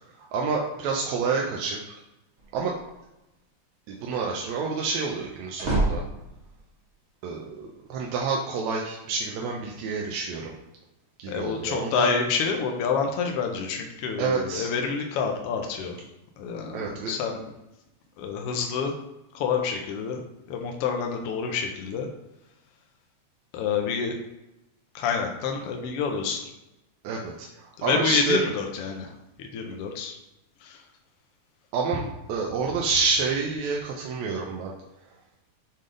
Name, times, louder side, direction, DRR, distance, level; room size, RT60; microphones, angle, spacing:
voice 1, 0.3-2.0 2.5-2.7 3.9-6.0 7.2-10.5 11.2-12.1 14.2-14.7 16.7-17.1 27.0-28.4 31.7-32.0 32.3-34.7, right 4 dB, 75° right, -1 dB, 1.9 m, -28 dB
sound 1, 2.4-2.9 5.1-6.7, right 2 dB, 40° right, 1.4 m, -28 dB
voice 2, 11.3-16.0 16.4-17.5 18.2-18.9 19.3-20.2 20.5-22.1 23.5-24.2 24.9-26.5 27.8-29.1 29.4-30.2 30.6-30.8, left 5 dB, 75° left, 3 dB, 1.4 m, -28 dB
7.7 x 3.5 x 3.8 m, 0.94 s
omnidirectional pair, 3.4 m